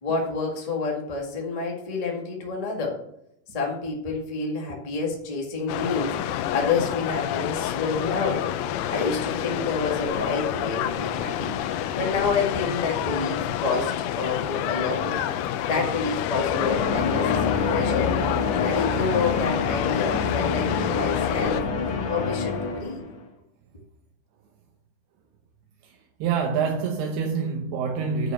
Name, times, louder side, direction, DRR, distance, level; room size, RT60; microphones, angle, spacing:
voice 1, 0.0-3.0 3.5-8.5 8.9-15.2 15.6-18.1 18.5-21.6 22.1-23.0, left 4 dB, 40° left, 0.5 m, -28 dB
sound 1, 5.7-21.6, left 11 dB, 85° left, 2.5 m, -28 dB
sound 2, 16.3-23.2, left 5 dB, 60° left, 2.0 m, -27 dB
voice 2, 26.2-28.3, right 5 dB, 85° right, 2.9 m, -26 dB
9.7 x 5.0 x 7.6 m
omnidirectional pair, 4.5 m